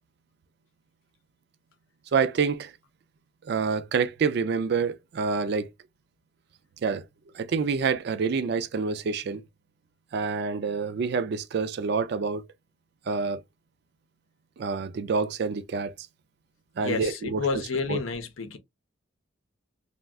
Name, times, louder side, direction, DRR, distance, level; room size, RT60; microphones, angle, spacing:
voice 1, 2.1-2.7 3.4-5.7 6.8-7.0 7.3-9.4 10.1-12.5 13.1-13.4 14.6-15.9 16.8-17.4 17.9-18.0, right 5 dB, 55° right, 0.3 m, -27 dB
voice 2, 16.8-18.6, left 4 dB, 85° left, 0.6 m, -30 dB
2.3 x 2.2 x 3.5 m
head